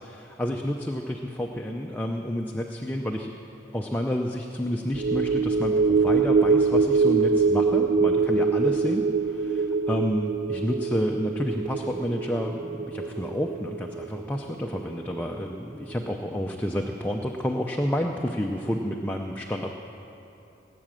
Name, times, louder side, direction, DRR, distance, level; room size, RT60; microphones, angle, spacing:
voice 1, 0.0-3.3 3.7-19.8, equal, 10° left, 1 dB, 0.5 m, -30 dB
sound 1, 4.9-15.6 15.9-16.0, right 4 dB, 60° right, 0.4 m, -24 dB
18.0 x 8.5 x 7.5 m, 2.8 s
head